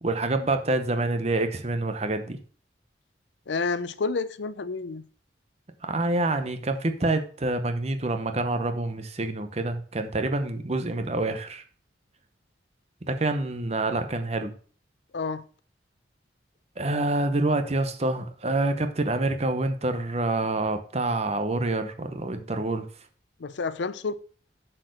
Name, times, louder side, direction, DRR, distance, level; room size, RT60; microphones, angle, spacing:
voice 1, 0.0-2.4 5.8-11.6 13.0-14.5 16.8-22.8, right 2 dB, 35° right, 0.8 m, -27 dB
voice 2, 3.5-5.0 15.1-15.4 23.4-24.2, left 4 dB, 75° left, 0.5 m, -29 dB
7.8 x 4.6 x 6.3 m
head